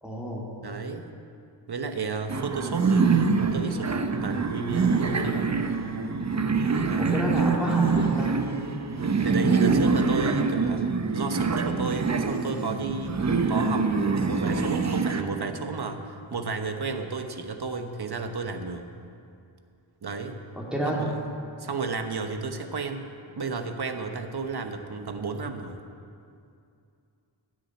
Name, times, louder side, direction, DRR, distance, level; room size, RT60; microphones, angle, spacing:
voice 1, 0.0-0.5 7.0-8.6 20.5-21.0, equal, ahead, -4 dB, 2.6 m, -30 dB
voice 2, 0.6-1.1 1.7-5.6 6.9-7.7 9.2-10.9 11.1-13.2 13.5-18.9 20.0-20.4 20.8-21.2 21.6-23.1 23.4-25.8, right 4 dB, 50° right, 6 dB, 1.1 m, -33 dB
sound 1, 2.3-15.2, right 4 dB, 35° right, 0.7 m, -25 dB
13.0 x 6.3 x 9.7 m, 2.5 s
wide cardioid pair, 100°, 48 cm